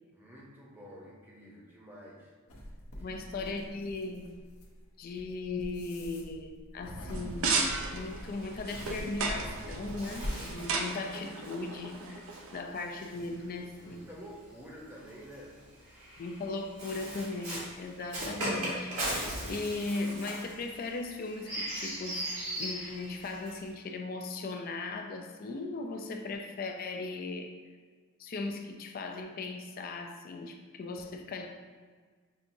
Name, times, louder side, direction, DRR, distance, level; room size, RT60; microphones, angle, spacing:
voice 1, 0.1-2.3 2.9-3.5 13.0-15.6, equal, 10° right, -5 dB, 0.7 m, -50 dB
sound 1, 2.5-10.5, equal, 80° left, 0.8 m, -43 dB
voice 2, 3.0-4.4 5.0-12.3 12.5-14.0 16.2-22.3 22.6-27.5 28.2-31.5, left 3 dB, 40° left, 4 dB, 0.3 m, -38 dB
sound 2, 7.1-12.6, right 4 dB, 65° right, 0.4 m, -35 dB
Bird, 7.4-14.0 14.9-23.7, right 1 dB, 80° right, 1.4 m, -40 dB
5.8 x 2.6 x 2.6 m, 1.5 s
head